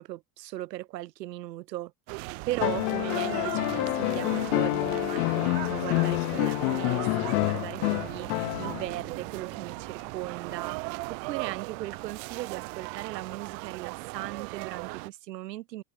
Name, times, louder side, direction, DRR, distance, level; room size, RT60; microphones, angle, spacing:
voice 1, 0.0-15.8, right 15 dB, 80° right, 1.6 m, -38 dB
sound 1, 2.1-15.1, right 35 dB, 60° right, 0.7 m, -38 dB
sound 2, 2.6-9.0 10.5-10.6, left 29 dB, 60° left, 0.6 m, -28 dB
hypercardioid pair, 85°, 49 cm